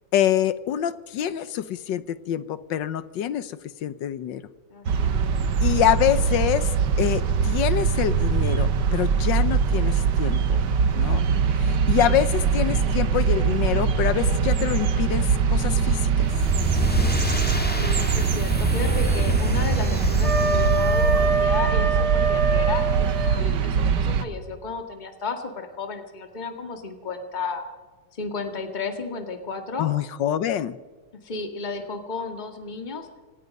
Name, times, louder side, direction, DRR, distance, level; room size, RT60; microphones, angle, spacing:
voice 1, 0.1-3.5 3.8-4.4 5.6-6.7 7.0-10.6 10.9-11.2 11.6-16.3 29.8-30.8, left 11 dB, 70° left, 15 dB, 1.4 m, -25 dB
voice 2, 4.7-5.6 12.6-13.1 17.7-27.6 28.1-29.9 31.2-33.1, left 4 dB, 25° left, 5 dB, 1.9 m, -33 dB
sound 1, 4.9-24.2, right 6 dB, 65° right, 1.6 m, -22 dB
sound 2, 16.2-21.5, equal, 5° left, 1.8 m, -27 dB
Wind instrument woodwind instrument, 20.2-23.4, right 3 dB, 30° right, 5.7 m, -24 dB
27.0 x 17.5 x 5.4 m, 1.3 s
omnidirectional pair, 2.2 m